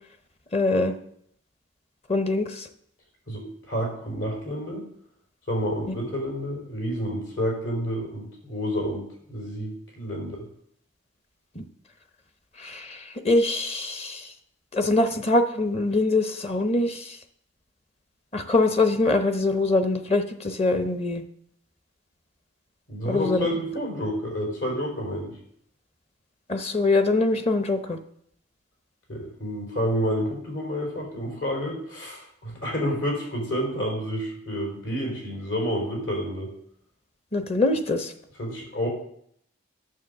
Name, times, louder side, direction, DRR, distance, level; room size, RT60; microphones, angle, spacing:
voice 1, 0.5-0.9 2.1-2.7 5.9-6.0 11.6-11.7 12.6-14.3 14.7-17.2 18.3-21.2 23.1-23.5 26.5-28.0 37.3-38.1, left 2 dB, 30° left, 8 dB, 0.8 m, -23 dB
voice 2, 3.3-4.8 5.5-10.4 22.9-25.3 29.1-36.5 38.4-38.9, equal, 75° left, 0 dB, 4.1 m, -29 dB
9.5 x 7.4 x 6.6 m, 0.69 s
head